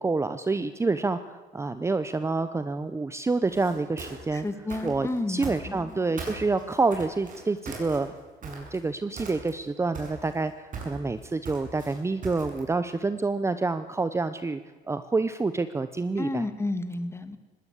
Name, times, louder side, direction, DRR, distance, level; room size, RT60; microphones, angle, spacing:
voice 1, 0.0-4.5 4.8-8.1 8.4-14.6 14.9-16.5, right 3 dB, 15° right, 12 dB, 0.8 m, -28 dB
sound 1, 3.4-5.9 6.2-8.9 9.2-9.7 9.9-12.7, right 4 dB, 50° right, 6.8 m, -40 dB
voice 2, 4.3-6.0 16.2-17.4, left 2 dB, 15° left, 11 dB, 1.8 m, -31 dB
20.0 x 17.5 x 8.3 m, 1.3 s
cardioid pair, 110°, 17 cm